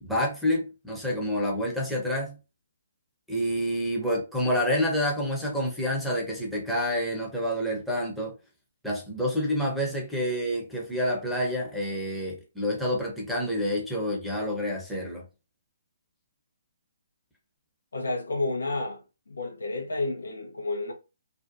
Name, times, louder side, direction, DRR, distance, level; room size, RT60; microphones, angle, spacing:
voice 1, 0.0-2.4 3.3-8.4 8.8-15.2, equal, ahead, 0.7 m, -28 dB
voice 2, 17.9-20.9, left 2 dB, 85° left, 0.8 m, -31 dB
2.5 x 2.2 x 2.5 m
hypercardioid pair, 140°, 0 cm